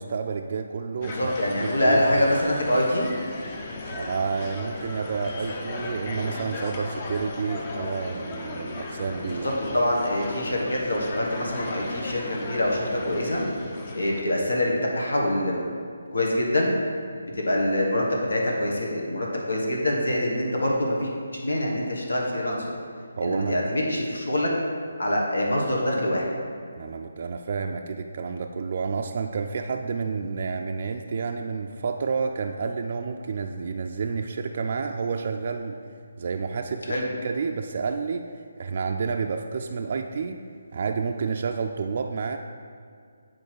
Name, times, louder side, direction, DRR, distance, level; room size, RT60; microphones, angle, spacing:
voice 1, 0.0-1.3 1.6-2.0 3.9-9.6 23.1-23.6 26.8-35.8 36.2-38.3 38.6-40.4 40.7-42.4, right 5 dB, 50° right, 3 dB, 0.4 m, -30 dB
voice 2, 1.0-3.1 9.2-9.4 9.7-13.4 13.9-15.6 16.1-16.8 17.2-21.1 21.4-22.7 23.2-24.5 25.0-26.3 36.9-37.1, left 1 dB, 80° left, -2 dB, 1.5 m, -25 dB
sound 1, 1.0-14.2, left 2 dB, 35° left, 0.8 m, -36 dB
8.4 x 4.6 x 4.6 m, 2.2 s
figure-of-eight pair, 150°, 0 cm